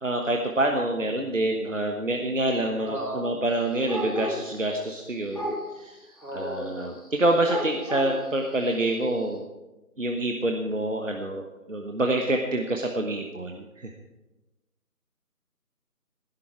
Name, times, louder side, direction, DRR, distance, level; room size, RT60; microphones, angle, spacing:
voice 1, 0.0-5.9 6.3-9.5 10.0-11.4 11.7-13.9, right 1 dB, 55° right, 3 dB, 1.3 m, -27 dB
voice 2, 2.8-3.4 6.2-6.8, right 1 dB, 85° right, 0 dB, 4.7 m, -34 dB
sound 1, 3.9-5.0 5.3-5.8 6.2-9.2, equal, 20° left, 3.0 m, -34 dB
15.5 x 11.5 x 4.6 m, 1.0 s
figure-of-eight pair, 170°, 46 cm